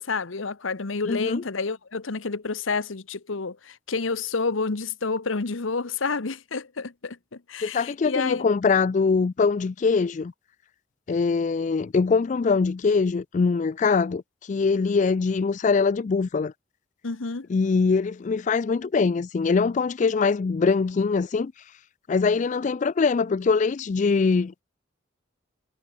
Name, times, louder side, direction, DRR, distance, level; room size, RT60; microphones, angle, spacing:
voice 1, 0.0-8.5 17.0-17.5, left 4 dB, 90° left, 1.1 m, -29 dB
voice 2, 1.0-1.4 7.6-10.3 11.1-14.2 14.5-16.5 17.5-21.5 22.1-24.6, left 4 dB, 40° left, 0.3 m, -23 dB
head